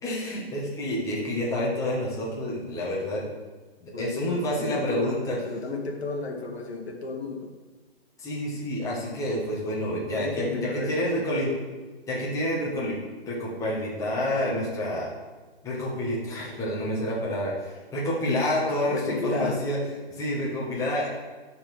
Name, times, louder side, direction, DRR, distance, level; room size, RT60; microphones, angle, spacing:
voice 1, 0.0-3.3 3.8-5.4 8.2-11.5 12.1-13.0 13.3-15.1 15.6-19.8 20.2-21.1, left 1 dB, 10° left, -5 dB, 1.7 m, -28 dB
voice 2, 3.9-5.2 5.4-7.5 10.1-11.3 18.2-19.6, left 3 dB, 75° left, 2 dB, 1.7 m, -33 dB
11.0 x 4.6 x 6.1 m, 1.3 s
hypercardioid pair, 140°, 32 cm